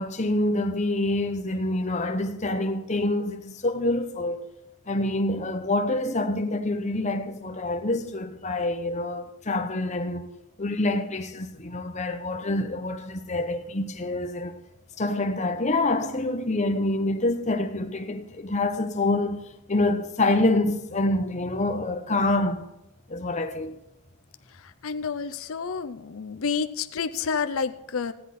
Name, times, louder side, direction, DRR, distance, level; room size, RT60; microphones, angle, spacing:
voice 1, 0.0-4.5 4.9-10.3 10.6-14.6 15.0-19.4 19.7-22.6 23.1-23.8, left 2 dB, 30° left, 0.9 m, -26 dB
voice 2, 24.8-28.1, left 5 dB, 65° left, 0.6 m, -29 dB
15.0 x 10.0 x 4.2 m
head